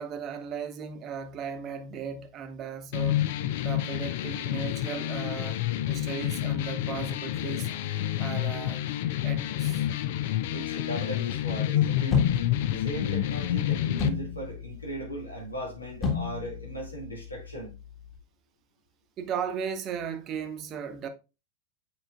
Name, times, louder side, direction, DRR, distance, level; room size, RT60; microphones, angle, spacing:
voice 1, 0.0-3.2 3.6-7.7 8.2-8.9 9.2-9.8 19.2-21.1, right 7 dB, 30° right, 0.9 m, -36 dB
sound 1, 2.9-14.1, left 12 dB, 50° left, 0.4 m, -29 dB
voice 2, 10.5-12.2 12.7-17.8, right 1 dB, 80° left, 2.2 m, -38 dB
sound 2, 12.1-18.2, left 5 dB, 30° left, 1.7 m, -34 dB
7.8 x 4.9 x 2.4 m
figure-of-eight pair, 90°, 0 cm